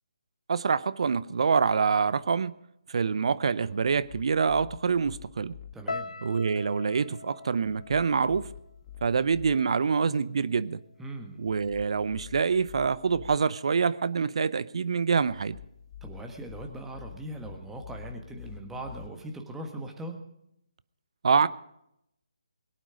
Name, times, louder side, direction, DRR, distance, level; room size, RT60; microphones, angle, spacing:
voice 1, 0.5-2.5 2.9-5.5 6.2-8.5 9.0-10.8 11.4-15.6 21.2-21.5, right 5 dB, 55° right, 17 dB, 0.7 m, -26 dB
sound 1, 3.8-5.7 7.6-9.6 11.4-13.4 15.3-19.1, left 8 dB, 30° left, 0.9 m, -47 dB
voice 2, 5.7-6.1 11.0-11.4 16.0-20.2, right 1 dB, 5° right, 3 dB, 1.6 m, -40 dB
sound 2, 5.9-10.1 10.3-11.1 11.7-11.9, left 3 dB, 80° left, 0.6 m, -43 dB
22.0 x 9.1 x 5.1 m, 0.78 s
figure-of-eight pair, 150°, 4 cm